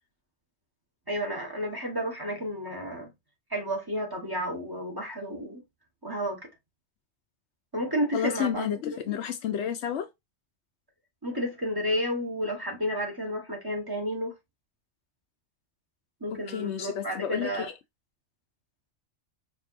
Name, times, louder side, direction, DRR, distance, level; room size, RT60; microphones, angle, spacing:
voice 1, 1.1-3.1 3.5-5.6 6.0-6.5 7.7-8.7 11.2-14.3 16.2-17.7, equal, 20° right, 1.1 m, -31 dB
voice 2, 8.1-10.1 16.3-17.7, left 9 dB, 75° left, 0.8 m, -31 dB
4.8 x 2.6 x 2.5 m
omnidirectional pair, 1.2 m